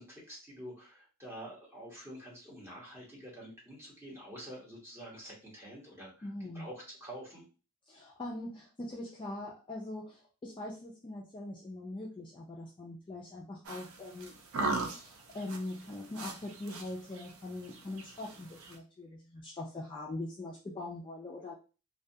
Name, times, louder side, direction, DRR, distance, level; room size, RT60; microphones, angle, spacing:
voice 1, 0.0-6.3 6.5-7.4, equal, 10° right, -5 dB, 0.9 m, -47 dB
voice 2, 6.2-6.7 7.9-21.5, left 2 dB, 25° left, -2 dB, 0.3 m, -42 dB
sound 1, 13.6-18.7, right 3 dB, 75° right, 0.5 m, -39 dB
2.2 x 2.2 x 2.6 m, 0.34 s
head